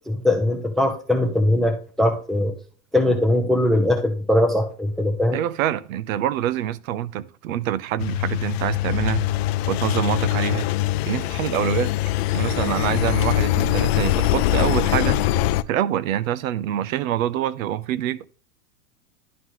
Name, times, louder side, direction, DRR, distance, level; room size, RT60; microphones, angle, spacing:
voice 1, 0.1-2.5 2.9-5.4, left 1 dB, ahead, 0.6 m, -21 dB
voice 2, 5.3-9.3 9.7-10.7 11.1-11.9 12.3-15.2 15.7-18.2, right 11 dB, 70° right, 0.8 m, -25 dB
Engine, 8.0-15.6, left 14 dB, 50° left, 0.4 m, -22 dB
11.5 x 3.9 x 3.1 m
supercardioid pair, 130°, 42 cm